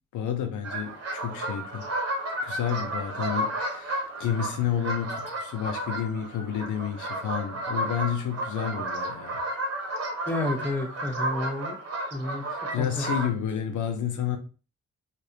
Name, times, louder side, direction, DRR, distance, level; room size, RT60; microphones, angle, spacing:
voice 1, 0.1-1.9 2.4-9.4 12.5-14.4, left 8 dB, 75° left, 0.6 m, -30 dB
sound 1, 0.6-13.3, right 1 dB, 50° right, 1.0 m, -32 dB
voice 2, 10.3-11.8 12.1-12.4 12.8-13.0, left 2 dB, 5° left, 0.8 m, -30 dB
3.2 x 2.4 x 2.7 m
supercardioid pair, 60°, 30 cm